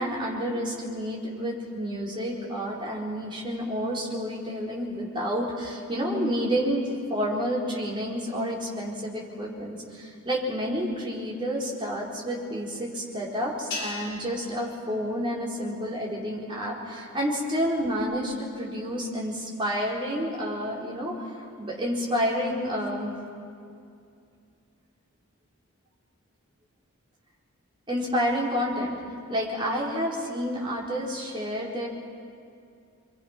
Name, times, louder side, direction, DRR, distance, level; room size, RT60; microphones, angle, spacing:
voice 1, 0.0-21.2 21.6-23.1 27.9-29.0 29.3-31.9, equal, 20° right, -4 dB, 4.4 m, -29 dB
sound 1, 13.7-16.1, left 3 dB, 50° left, 6.4 m, -40 dB
28.0 x 23.5 x 6.0 m, 2.4 s
head